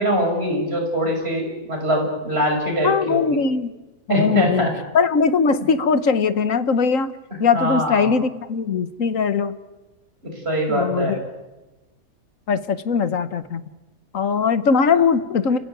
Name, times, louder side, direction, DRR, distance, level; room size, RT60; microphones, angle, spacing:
voice 1, 0.0-3.2 4.1-4.7 7.5-8.1 10.2-11.2, equal, 45° right, 2 dB, 6.2 m, -22 dB
voice 2, 2.8-3.7 4.1-4.7 4.9-9.6 10.7-11.2 12.5-13.6 14.1-15.6, left 5 dB, 65° left, 12 dB, 1.6 m, -20 dB
29.5 x 16.0 x 9.3 m, 1.1 s
omnidirectional pair, 1.5 m